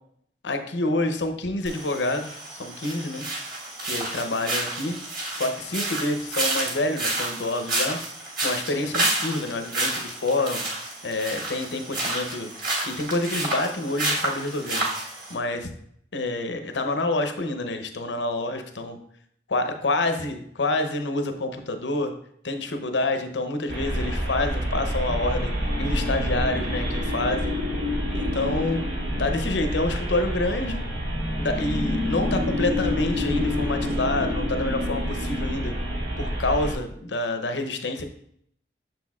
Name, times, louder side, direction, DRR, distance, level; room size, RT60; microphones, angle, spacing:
voice 1, 0.4-3.3 3.8-5.0 5.3-8.0 8.4-10.7 11.0-12.5 12.8-14.8 15.3-15.7 16.1-19.0 19.5-22.1 22.4-25.5 25.8-27.6 28.1-28.9 29.2-30.8 31.3-35.7 36.2-38.0, left 2 dB, 90° left, 7 dB, 0.7 m, -27 dB
sound 1, 1.6-15.3, right 2 dB, 50° right, 1.5 m, -30 dB
sound 2, 23.7-36.7, equal, 90° right, 1.4 m, -27 dB
6.7 x 6.1 x 2.4 m, 0.68 s
head